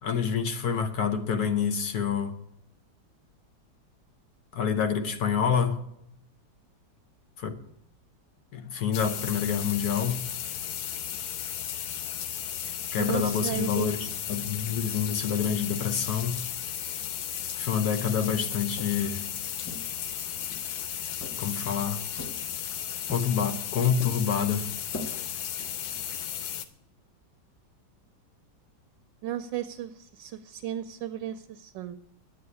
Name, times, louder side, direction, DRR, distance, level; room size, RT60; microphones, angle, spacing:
voice 1, 0.0-2.4 4.5-5.8 7.4-7.6 8.5-10.2 12.9-16.4 17.6-19.2 21.4-22.0 23.1-24.7, left 7 dB, 60° left, 1.4 m, -27 dB
sound 1, 8.9-26.7, left 10 dB, 90° left, 1.6 m, -35 dB
voice 2, 12.9-14.1 29.2-32.0, right 11 dB, 75° right, 1.3 m, -34 dB
Walk footsteps, 18.5-19.2 19.6-20.7 21.2-21.8 22.2-22.7 23.1-23.7 24.0-26.2, left 1 dB, 15° left, 0.7 m, -43 dB
10.0 x 7.8 x 9.6 m
omnidirectional pair, 2.1 m